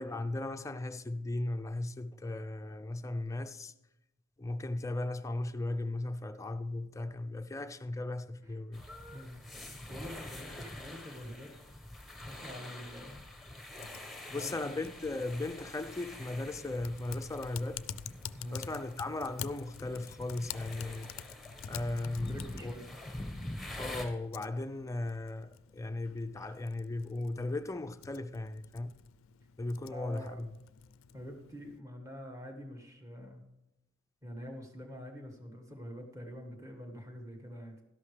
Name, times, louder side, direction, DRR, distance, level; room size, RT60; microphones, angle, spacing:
voice 1, 0.0-3.7 4.4-8.8 14.3-17.8 18.5-21.2 21.7-22.7 23.8-28.9 29.6-30.5, left 2 dB, 15° left, 0.4 m, -37 dB
sound 1, 8.7-24.1, left 1 dB, ahead, 1.2 m, -46 dB
voice 2, 9.9-11.5 12.3-13.2 14.3-14.8 18.3-18.6 22.3-22.9 29.9-30.4 31.1-33.4 34.2-37.8, equal, 15° right, 1.6 m, -45 dB
Typing, 13.8-31.8, left 8 dB, 75° left, 0.4 m, -49 dB
12.5 x 11.0 x 3.3 m
head